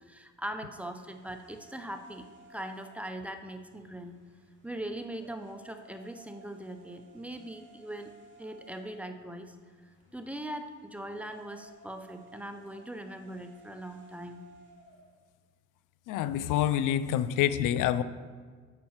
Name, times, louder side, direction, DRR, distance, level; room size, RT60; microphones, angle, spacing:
voice 1, 0.0-4.1 4.6-8.1 8.4-9.5 10.1-14.4, right 1 dB, 5° right, 6 dB, 0.7 m, -41 dB
sound 1, 0.7-15.2, right 2 dB, 40° right, 2.6 m, -58 dB
voice 2, 16.1-18.0, left 11 dB, 90° left, 14 dB, 0.5 m, -27 dB
7.6 x 5.4 x 7.3 m, 1.5 s
cardioid pair, 90°, 30 cm